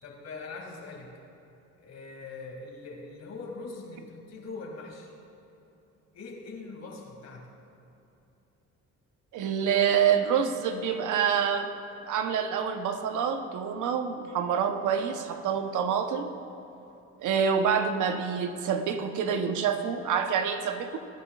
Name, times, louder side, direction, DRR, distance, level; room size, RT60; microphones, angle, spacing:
voice 1, 0.0-1.1 1.8-5.1 6.1-7.5, left 3 dB, 60° left, 0 dB, 2.5 m, -42 dB
voice 2, 9.3-11.7 12.1-16.3 17.2-21.0, right 7 dB, 85° right, 7 dB, 1.0 m, -27 dB
21.0 x 9.3 x 2.4 m, 2.9 s
cardioid pair, 90°, 30 cm